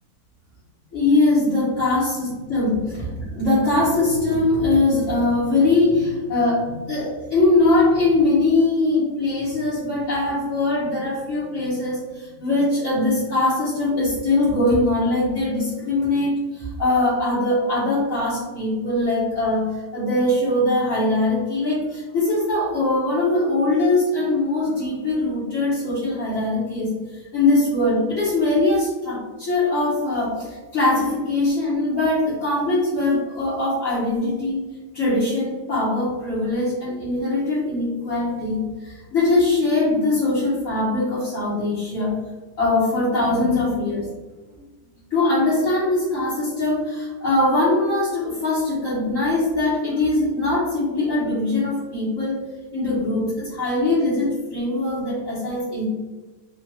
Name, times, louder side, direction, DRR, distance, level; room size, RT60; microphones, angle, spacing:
voice 1, 0.9-2.7 3.3-26.9 27.3-34.6 34.9-42.1 42.6-44.1 44.5-44.6 45.1-52.4 52.7-55.9, left 2 dB, 60° left, -10 dB, 1.5 m, -21 dB
3.8 x 2.5 x 3.0 m, 1.3 s
omnidirectional pair, 1.7 m